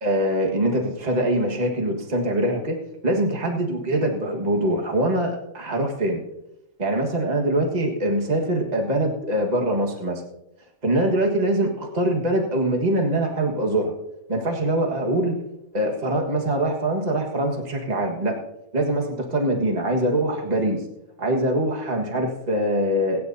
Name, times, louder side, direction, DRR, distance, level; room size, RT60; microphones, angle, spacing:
voice 1, 0.0-2.8 3.0-6.2 6.8-10.2 10.8-13.9 14.3-15.4 15.7-18.3 18.7-20.8 21.2-23.2, right 1 dB, 30° right, 1 dB, 1.7 m, -23 dB
23.0 x 9.9 x 2.7 m, 0.87 s
omnidirectional pair, 1.6 m